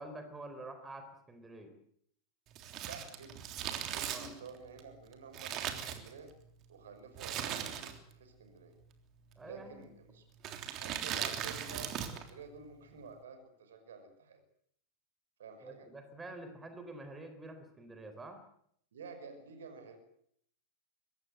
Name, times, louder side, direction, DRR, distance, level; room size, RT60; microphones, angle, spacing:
voice 1, 0.0-1.7 4.1-4.3 9.4-9.9 15.6-18.4, right 2 dB, 15° right, 8 dB, 4.1 m, -47 dB
Crumpling crinkling, 2.5-6.5 7.2-8.2 8.4-8.5 9.4-9.7 10.4-12.3 12.6-12.7, right 9 dB, 35° right, 3.4 m, -39 dB
voice 2, 2.8-3.5 3.8-6.3 6.7-8.8 9.4-10.2 10.7-14.4 15.4-15.9 18.9-20.0, right 5 dB, 65° right, 7 dB, 5.8 m, -50 dB
23.5 x 20.0 x 8.0 m, 0.67 s
figure-of-eight pair, 90°, 0 cm